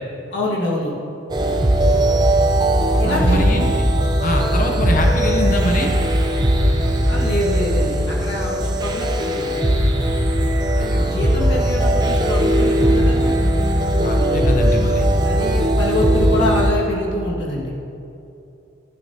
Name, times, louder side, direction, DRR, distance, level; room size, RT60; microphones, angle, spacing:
voice 1, 0.3-0.9 3.0-3.4 7.1-9.6 11.0-13.3 15.2-17.7, left 1 dB, 55° left, -5 dB, 1.8 m, -25 dB
sound 1, 1.3-16.7, equal, 20° right, 0.5 m, -18 dB
voice 2, 3.1-3.7 4.2-5.9 10.8-11.1 14.0-15.1, left 1 dB, 40° left, 2 dB, 0.7 m, -23 dB
11.0 x 10.5 x 2.8 m, 2.8 s
head